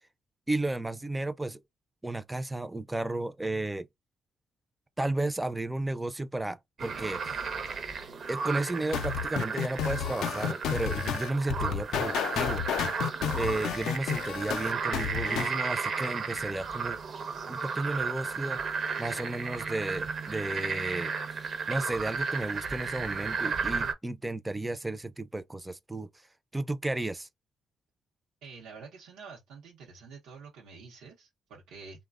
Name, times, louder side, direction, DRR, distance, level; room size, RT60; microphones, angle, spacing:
voice 1, 0.5-1.6 2.0-3.9 5.0-7.6 8.3-12.6 13.4-17.0 17.5-18.6 19.0-26.1 26.5-27.3, right 2 dB, 10° right, 0.4 m, -33 dB
sound 1, 6.8-23.9, right 5 dB, 50° right, 0.6 m, -34 dB
sound 2, 8.9-15.6, left 9 dB, 80° left, 0.4 m, -31 dB
voice 2, 28.4-32.0, right 5 dB, 85° right, 0.7 m, -48 dB
3.2 x 2.1 x 2.3 m
cardioid pair, 90°, 0 cm